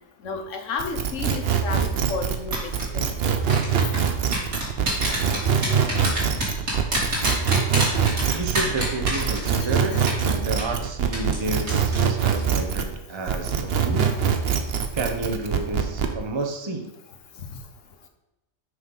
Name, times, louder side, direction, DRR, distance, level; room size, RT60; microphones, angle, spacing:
voice 1, 0.2-3.4 9.6-10.0, left 4 dB, 65° left, 5 dB, 1.3 m, -33 dB
sound 1, 0.8-13.0 13.3-16.1, right 7 dB, 50° right, 0.9 m, -23 dB
sound 2, 2.5-2.8 3.5-9.8 10.1-10.2 10.6-10.7 11.1-11.4 11.7-12.0 12.3-12.4, right 1 dB, 85° right, 3.1 m, -26 dB
voice 2, 8.3-14.1 14.9-16.9, right 2 dB, 25° right, 4 dB, 0.8 m, -30 dB
6.4 x 5.8 x 5.4 m, 0.96 s
omnidirectional pair, 1.4 m